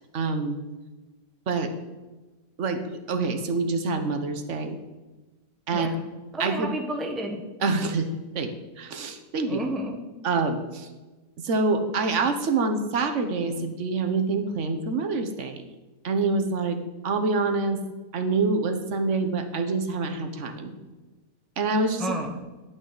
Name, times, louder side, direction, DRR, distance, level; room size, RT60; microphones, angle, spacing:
voice 1, 0.1-0.6 1.5-1.7 2.6-2.8 3.1-4.8 5.7-5.9 6.4-6.7 7.6-8.1 8.3-8.5 8.8-9.6 10.2-10.9 11.4-15.6 16.0-16.8 17.0-17.8 18.1-20.7 21.6-22.1, right 3 dB, 50° right, 7 dB, 1.1 m, -26 dB
voice 2, 5.7-6.1 6.3-7.4 9.5-10.0 22.0-22.4, right 1 dB, ahead, 2 dB, 0.8 m, -31 dB
10.5 x 9.0 x 3.9 m, 1.2 s
omnidirectional pair, 1.8 m